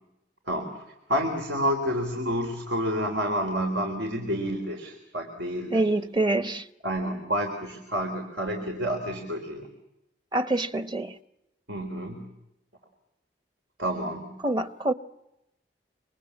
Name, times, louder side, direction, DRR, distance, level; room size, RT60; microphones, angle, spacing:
voice 1, 0.5-5.9 6.8-9.7 11.7-12.3 13.8-14.3, equal, 90° right, 3.8 m, -29 dB
voice 2, 5.7-6.6 10.3-11.1 14.4-14.9, right 2 dB, 25° right, 0.9 m, -25 dB
28.0 x 25.5 x 7.2 m
head